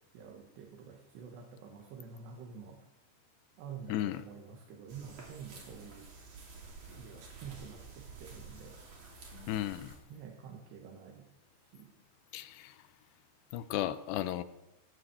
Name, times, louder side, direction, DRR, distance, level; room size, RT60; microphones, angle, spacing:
voice 1, 0.1-2.8 3.6-6.1 6.9-8.7 10.1-11.3 11.7-11.9, right 6 dB, 75° right, 1 dB, 3.7 m, -48 dB
voice 2, 3.9-4.2 9.5-9.9 12.3-12.8 13.5-14.4, left 13 dB, 80° left, 12 dB, 2.7 m, -34 dB
sound 1, 4.9-10.0, right 3 dB, 50° right, 3.9 m, -50 dB
18.5 x 7.6 x 7.8 m, 0.92 s
omnidirectional pair, 5.1 m